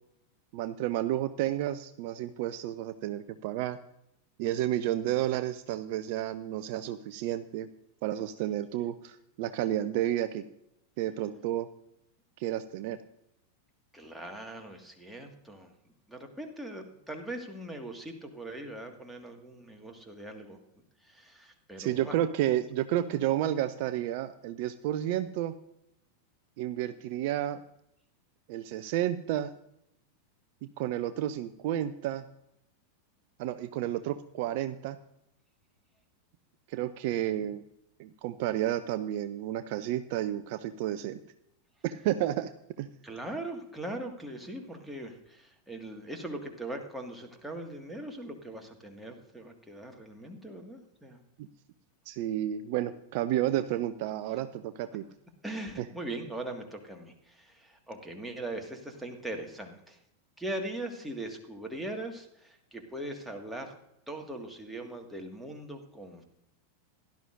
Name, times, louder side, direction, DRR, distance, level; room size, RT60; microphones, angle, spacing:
voice 1, 0.5-3.8 4.4-7.7 8.0-10.4 11.0-11.7 12.4-13.0 21.8-25.5 26.6-27.6 28.5-29.5 30.8-32.2 33.4-35.0 36.7-37.6 38.0-41.2 41.8-42.5 42.8-42.9 51.4-51.5 52.1-55.0, right 12 dB, 50° right, 12 dB, 0.5 m, -31 dB
voice 2, 13.9-15.7 16.1-20.6 21.0-22.2 23.1-23.2 37.3-37.5 43.0-51.2 55.4-60.0 60.4-63.7 64.1-66.2, right 1 dB, ahead, 2 dB, 1.8 m, -40 dB
16.5 x 11.5 x 2.5 m, 0.80 s
figure-of-eight pair, 90°, 0 cm